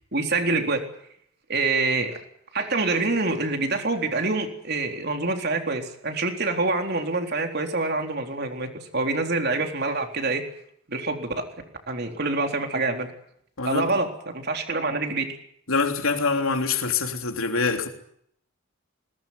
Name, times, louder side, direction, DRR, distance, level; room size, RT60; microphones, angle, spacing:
voice 1, 0.1-0.8 1.5-2.2 2.5-10.4 10.9-11.3 11.9-13.1 13.6-15.3, right 3 dB, 50° right, 3.8 m, -26 dB
voice 2, 13.6-13.9 15.7-17.9, left 4 dB, 85° left, 3.4 m, -25 dB
20.5 x 19.5 x 9.5 m
head